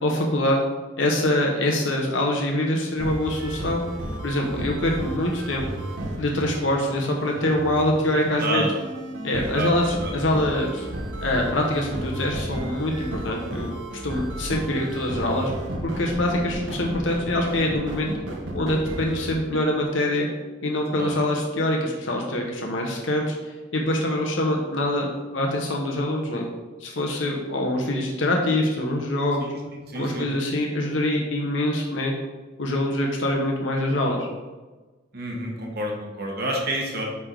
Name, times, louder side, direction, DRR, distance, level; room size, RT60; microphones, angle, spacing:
voice 1, 0.0-0.6 1.0-3.8 4.2-5.6 6.2-8.6 9.2-10.9 11.2-13.7 14.0-15.5 15.8-18.1 18.5-20.3 20.6-23.3 23.7-26.4 26.8-29.4 29.9-32.1 32.6-34.3, left 1 dB, 70° left, 0 dB, 1.0 m, -24 dB
sound 1, 3.0-19.3, right 1 dB, 85° right, 1.0 m, -33 dB
voice 2, 9.3-9.7 10.0-10.1 20.9-21.1 29.4-30.3 35.1-37.0, right 1 dB, 55° right, 0 dB, 1.0 m, -29 dB
9.4 x 3.4 x 3.8 m, 1.3 s
head